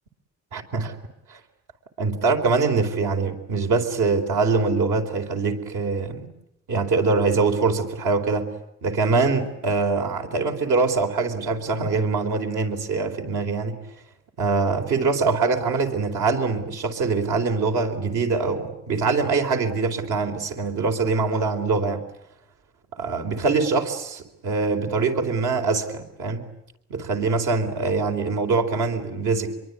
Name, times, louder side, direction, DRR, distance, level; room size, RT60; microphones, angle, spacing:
voice 1, 0.5-0.9 1.3-1.4 2.0-6.3 6.7-8.5 8.8-13.8 14.4-22.0 23.0-26.5 26.9-29.5, right 4 dB, 80° right, 4 dB, 4.1 m, -23 dB
27.0 x 23.0 x 9.6 m, 0.81 s
cardioid pair, 90°, 30 cm